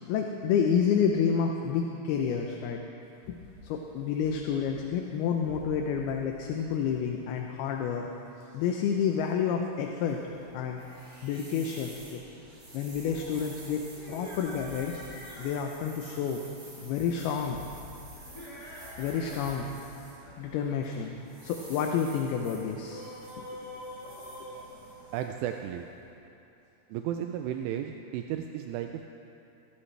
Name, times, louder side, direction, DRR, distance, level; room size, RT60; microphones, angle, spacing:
voice 1, 0.0-2.8 3.3-8.1 8.5-10.2 10.5-10.8 11.2-12.2 12.7-15.1 15.4-16.4 16.8-17.6 19.0-19.7 20.4-21.1 21.4-23.0 23.4-23.7, left 7 dB, 75° left, 2 dB, 2.4 m, -29 dB
sound 1, 3.0-22.4, left 3 dB, 40° left, 3.2 m, -54 dB
sound 2, 9.9-26.1, right 1 dB, 40° right, 4.8 m, -51 dB
sound 3, 13.9-15.7 18.2-19.7 20.0-20.4 22.6-25.5, equal, 10° left, 2.7 m, -45 dB
voice 2, 25.1-25.9 26.9-29.1, right 10 dB, 85° right, 5 dB, 2.7 m, -34 dB
22.5 x 13.0 x 3.3 m, 2.8 s
omnidirectional pair, 5.0 m